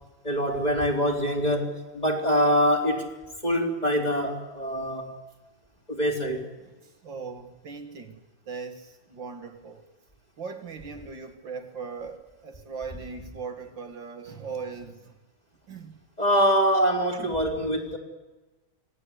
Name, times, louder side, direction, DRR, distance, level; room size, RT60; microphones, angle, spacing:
voice 1, 0.2-3.1 3.4-5.1 5.9-6.4 16.2-18.0, equal, 20° left, 3.7 m, -24 dB
voice 2, 6.6-8.2 8.5-9.8 10.4-15.2 15.7-16.0 17.2-17.3, right 5 dB, 60° right, 2.4 m, -39 dB
26.0 x 19.0 x 8.2 m
omnidirectional pair, 2.3 m